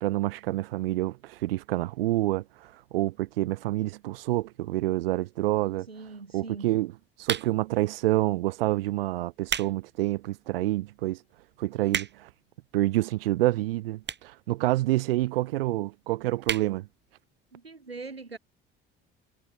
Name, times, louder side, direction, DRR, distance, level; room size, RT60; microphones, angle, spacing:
voice 1, 0.0-2.4 2.9-5.9 6.3-6.9 7.2-11.2 11.6-12.3 12.7-16.9, right 17 dB, 70° right, 1.9 m, -27 dB
voice 2, 5.9-6.8 17.5-18.4, right 4 dB, 85° right, 5.7 m, -42 dB
sound 1, 7.2-7.8 8.5-8.7 9.2-9.8 10.2-10.3 10.9-11.0 11.2-11.3 11.5-12.4 13.2-13.3 14.0-14.4 14.7-14.8 15.0-15.1 15.3-15.4 15.7-15.9 16.4-16.7 17.1-17.2 17.4-17.5, right 7 dB, 35° right, 5.2 m, -32 dB
figure-of-eight pair, 55°, 30 cm